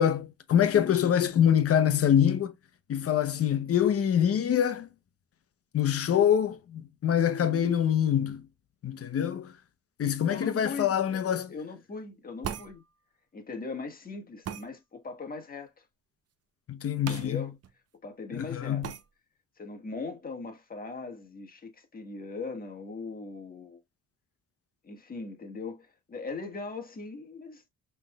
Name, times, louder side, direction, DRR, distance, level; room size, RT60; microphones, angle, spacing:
voice 1, 0.0-2.5 2.9-4.9 5.7-8.4 8.8-9.5 10.0-11.5 16.7-17.5 18.3-18.9, left 9 dB, 50° left, 0.9 m, -25 dB
voice 2, 10.3-12.8 13.3-15.8 17.0-17.5 18.0-18.8 19.6-23.8 24.8-27.6, left 4 dB, 30° left, 1.5 m, -40 dB
sound 1, 12.4-12.7 14.5-14.7 17.1-17.3 17.6-17.7 18.8-19.0, right 9 dB, 55° right, 0.7 m, -36 dB
5.7 x 3.4 x 2.3 m
cardioid pair, 90°, 30 cm